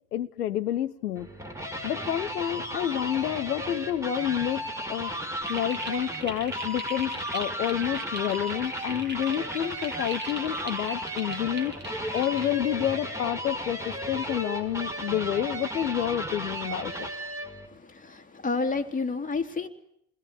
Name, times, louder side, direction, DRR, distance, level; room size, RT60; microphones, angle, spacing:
voice 1, 0.1-1.3 1.8-5.1 5.5-11.7 12.1-16.9, left 11 dB, 80° left, 12 dB, 1.0 m, -29 dB
sound 1, 1.1-17.7, equal, 5° right, 5.0 m, -35 dB
sound 2, 5.4-12.5, right 2 dB, 20° right, 5.1 m, -40 dB
voice 2, 17.7-19.7, left 4 dB, 15° left, 5 dB, 3.1 m, -30 dB
29.0 x 21.5 x 8.2 m, 0.74 s
figure-of-eight pair, 65°, 46 cm